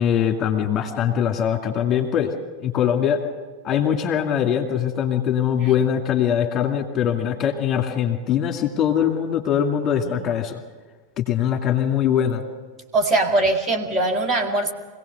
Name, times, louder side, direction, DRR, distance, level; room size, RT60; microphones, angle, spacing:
voice 1, 0.0-2.3 2.6-3.2 3.6-10.6 11.2-12.4, left 9 dB, 30° left, 4 dB, 2.3 m, -22 dB
voice 2, 12.9-14.7, right 2 dB, 25° right, 2 dB, 2.0 m, -22 dB
25.0 x 17.5 x 6.7 m, 1.4 s
figure-of-eight pair, 90°, 0 cm